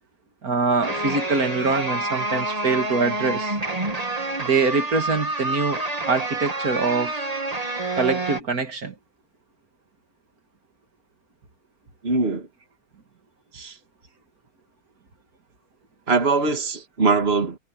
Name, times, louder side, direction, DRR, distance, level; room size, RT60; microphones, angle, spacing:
voice 1, 0.4-3.6 4.4-7.1 7.9-8.9, right 4 dB, 85° right, 2.6 m, -24 dB
sound 1, 0.8-8.4, right 2 dB, 25° right, 2.1 m, -28 dB
voice 2, 12.0-12.5 13.5-13.7 16.1-17.6, right 4 dB, 45° right, 2.3 m, -22 dB
omnidirectional pair, 1.5 m